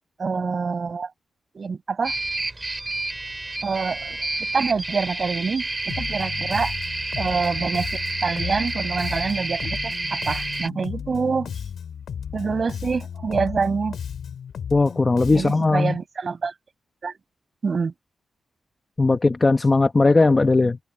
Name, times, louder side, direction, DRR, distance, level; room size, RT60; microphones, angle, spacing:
voice 1, 0.2-1.1 1.5-2.1 3.6-6.7 7.2-11.6 12.3-14.0 15.3-16.5 17.0-17.2 17.6-17.9, right 5 dB, 45° right, 7.0 m, -26 dB
sound 1, 2.0-10.7, right 2 dB, 20° right, 7.3 m, -29 dB
Bass guitar, 5.9-15.8, left 8 dB, 85° left, 6.2 m, -34 dB
voice 2, 14.7-16.0 19.0-20.8, left 3 dB, 25° left, 1.3 m, -18 dB
wide cardioid pair, 120°, 0 cm